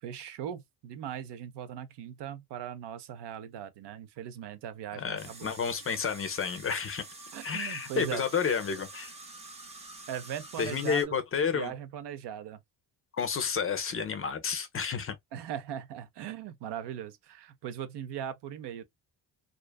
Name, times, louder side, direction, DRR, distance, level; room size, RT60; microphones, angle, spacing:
voice 1, 0.0-5.5 7.3-8.2 10.1-11.2 11.5-12.6 15.3-18.8, right 9 dB, 75° right, 0.6 m, -39 dB
voice 2, 4.9-7.0 7.4-9.1 10.6-11.7 13.1-15.2, left 6 dB, 35° left, 0.4 m, -31 dB
sound 1, 5.2-11.0, right 2 dB, 15° right, 0.6 m, -47 dB
2.5 x 2.3 x 2.2 m
cardioid pair, 145°, 42 cm